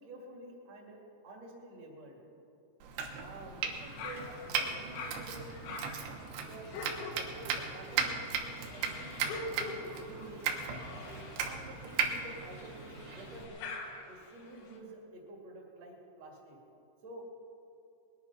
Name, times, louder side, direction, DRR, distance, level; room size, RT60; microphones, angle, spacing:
voice 1, 0.0-2.2 3.1-5.7 6.3-6.8 7.1-10.7 11.0-13.7 14.1-16.6 17.0-17.2, right 1 dB, 40° right, -2 dB, 3.1 m, -49 dB
Domestic sounds home sounds, 2.8-13.5, right 6 dB, 80° right, 3.5 m, -37 dB
sound 1, 3.8-14.8, left 3 dB, 75° left, 3.6 m, -46 dB
20.5 x 10.5 x 5.9 m, 2.7 s
omnidirectional pair, 5.3 m